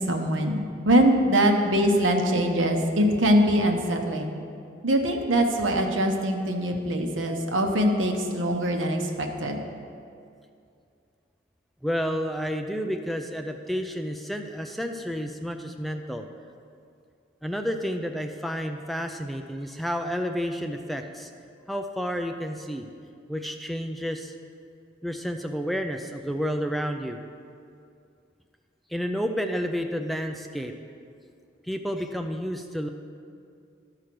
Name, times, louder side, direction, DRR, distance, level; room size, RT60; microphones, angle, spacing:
voice 1, 0.1-4.3 4.8-9.6, equal, 90° right, 4 dB, 1.0 m, -23 dB
voice 2, 11.8-16.3 17.4-21.3 21.7-22.9 23.3-24.3 25.0-27.2 28.9-30.7 31.7-32.9, equal, ahead, 5 dB, 0.3 m, -30 dB
12.5 x 4.9 x 6.0 m, 2.4 s
head